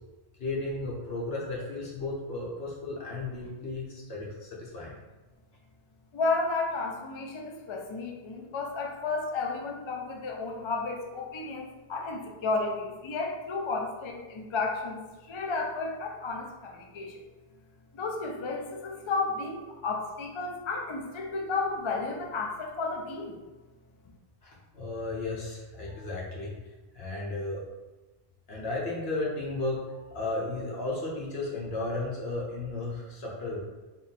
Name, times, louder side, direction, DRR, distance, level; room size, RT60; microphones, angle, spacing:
voice 1, 0.4-5.0 24.4-26.5 26.9-27.6 28.5-33.6, left 2 dB, 70° left, -4 dB, 1.2 m, -34 dB
voice 2, 6.1-17.2 17.9-23.4, left 3 dB, 50° left, 1 dB, 0.3 m, -32 dB
3.7 x 2.2 x 4.1 m, 1.2 s
omnidirectional pair, 1.1 m